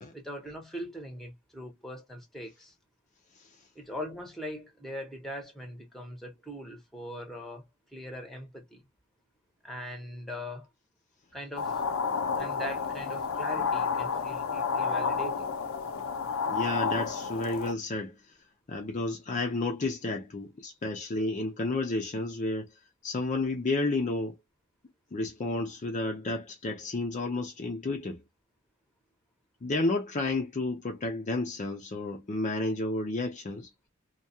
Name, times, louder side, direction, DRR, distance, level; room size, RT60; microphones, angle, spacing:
voice 1, 0.1-2.7 3.7-7.6 7.9-8.9 9.6-10.7 11.3-11.8 12.4-15.5, equal, ahead, 0.9 m, -41 dB
sound 1, 11.6-17.7, left 5 dB, 80° left, 0.6 m, -30 dB
voice 2, 16.5-18.2 18.7-22.7 23.0-24.4 25.1-28.2 29.6-33.7, left 2 dB, 35° left, 0.5 m, -31 dB
2.3 x 2.3 x 2.6 m
head